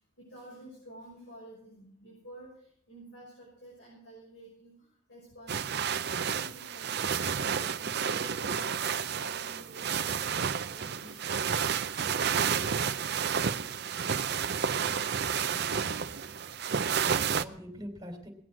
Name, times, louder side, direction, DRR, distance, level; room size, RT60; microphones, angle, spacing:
voice 1, 0.0-11.4, right 1 dB, 70° left, -5 dB, 6.1 m, -51 dB
sound 1, 5.5-17.4, right 7 dB, 55° right, 0.5 m, -31 dB
voice 2, 15.4-16.3 16.7-18.3, equal, 20° right, 2 dB, 3.2 m, -46 dB
20.0 x 7.7 x 6.3 m, 0.63 s
head